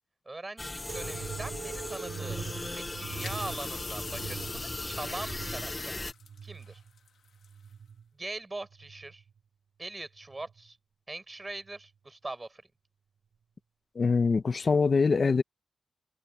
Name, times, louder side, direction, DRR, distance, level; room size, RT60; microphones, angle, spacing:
voice 1, 0.3-2.4 2.7-6.0 6.4-6.8 8.2-9.2 9.8-10.8 11.1-12.6, right 2 dB, 25° right, 7.8 m, -41 dB
sound 1, 0.6-6.1, left 2 dB, 25° left, 1.6 m, -37 dB
sound 2, 0.9-8.1 8.6-9.4 10.2-10.7 11.7-11.8, right 7 dB, 75° right, 3.6 m, -43 dB
sound 3, 2.2-7.7, left 7 dB, 80° left, 3.0 m, -48 dB
voice 2, 13.9-15.4, left 4 dB, 50° left, 1.5 m, -24 dB
cardioid pair, 65°, 0 cm